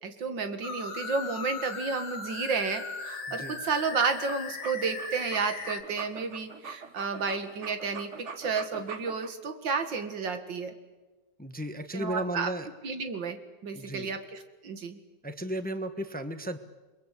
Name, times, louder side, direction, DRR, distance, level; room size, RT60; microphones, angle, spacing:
voice 1, 0.0-10.7 11.9-12.5 12.8-15.0, right 5 dB, 85° right, 8 dB, 2.6 m, -32 dB
sound 1, 0.6-5.8, left 4 dB, 90° left, 2.5 m, -38 dB
sound 2, 3.8-9.3, right 5 dB, 40° right, 1.6 m, -42 dB
voice 2, 11.4-12.7 13.7-14.1 15.2-16.6, right 1 dB, 5° left, 8 dB, 1.0 m, -34 dB
29.0 x 22.5 x 8.3 m, 1.2 s
omnidirectional pair, 1.9 m